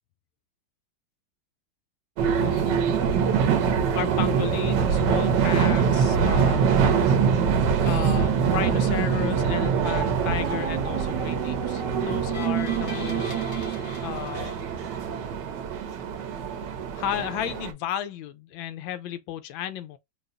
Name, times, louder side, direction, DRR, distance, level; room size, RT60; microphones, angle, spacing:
sound 1, 2.2-17.7, right 6 dB, 65° right, 1.3 m, -24 dB
voice 1, 2.4-2.7 3.9-7.2 7.8-13.4 14.0-14.6 16.9-20.0, left 11 dB, 80° left, 1.3 m, -33 dB
sound 2, 12.0-15.2, left 4 dB, 45° left, 1.5 m, -41 dB
4.8 x 2.3 x 2.5 m
omnidirectional pair, 2.2 m